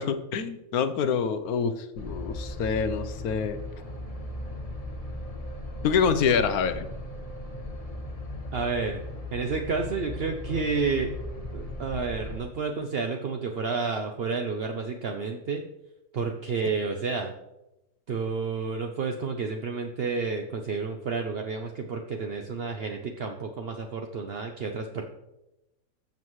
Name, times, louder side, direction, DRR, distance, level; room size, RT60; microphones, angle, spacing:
voice 1, 0.0-3.6 5.8-6.9, left 6 dB, 65° left, 11 dB, 1.1 m, -26 dB
sound 1, 2.0-12.4, left 1 dB, 25° left, 1.3 m, -37 dB
voice 2, 8.5-9.0 9.3-11.1 11.5-15.6 16.1-17.3 18.1-25.0, right 4 dB, 55° right, 4 dB, 0.6 m, -30 dB
12.5 x 7.5 x 3.1 m, 0.93 s
omnidirectional pair, 1.8 m